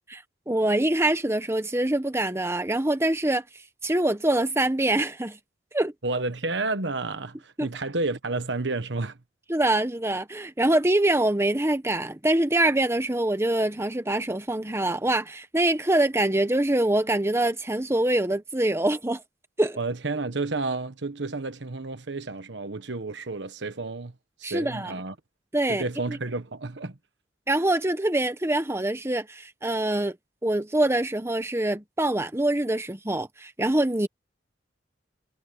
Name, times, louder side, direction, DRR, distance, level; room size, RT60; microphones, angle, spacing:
voice 1, 0.1-3.4 3.8-5.4 5.7-5.9 7.6-7.7 9.5-19.2 19.6-19.8 24.4-24.9 25.5-26.2 27.5-30.2 30.4-34.1, right 1 dB, 15° right, 1.2 m, -24 dB
voice 2, 6.0-9.2 19.8-24.1 24.4-25.1 25.7-27.0, right 3 dB, 70° right, 1.3 m, -31 dB
head